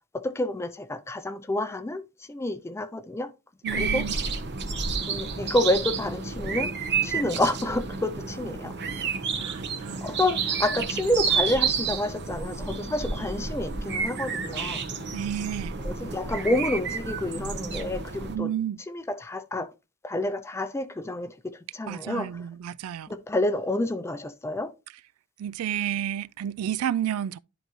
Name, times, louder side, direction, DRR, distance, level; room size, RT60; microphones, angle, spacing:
voice 1, 0.1-3.3 3.7-4.1 5.1-6.7 7.0-8.7 10.0-14.8 15.8-18.5 18.9-19.7 20.0-22.3 23.1-24.7, left 1 dB, 10° left, 0.4 m, -29 dB
voice 2, 3.6-4.1 9.4-10.0 15.1-15.8 18.3-18.8 21.9-23.1 25.4-27.4, right 10 dB, 75° right, 0.3 m, -31 dB
sound 1, 3.7-18.4, right 5 dB, 55° right, 1.0 m, -30 dB
11.0 x 3.9 x 3.0 m
head